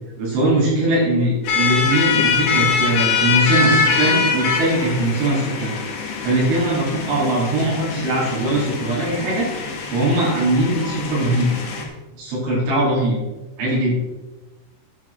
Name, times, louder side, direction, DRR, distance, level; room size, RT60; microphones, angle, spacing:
voice 1, 0.2-5.7 6.2-9.5 9.9-11.5 12.2-13.2 13.6-13.9, right 1 dB, 85° right, -6 dB, 7.0 m, -20 dB
sound 1, 1.4-11.8, left 5 dB, 70° left, 4.2 m, -23 dB
10.5 x 10.5 x 4.5 m, 1.1 s
omnidirectional pair, 5.2 m